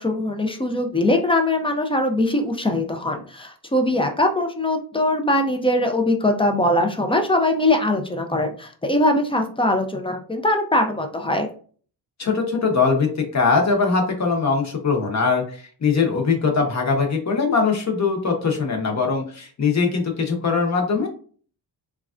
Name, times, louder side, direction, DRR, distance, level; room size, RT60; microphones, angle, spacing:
voice 1, 0.0-11.5, left 1 dB, 15° left, 4 dB, 0.3 m, -21 dB
voice 2, 12.2-21.1, left 4 dB, 40° left, 2 dB, 0.8 m, -21 dB
3.1 x 2.4 x 2.4 m, 0.43 s
wide cardioid pair, 125°, 45 cm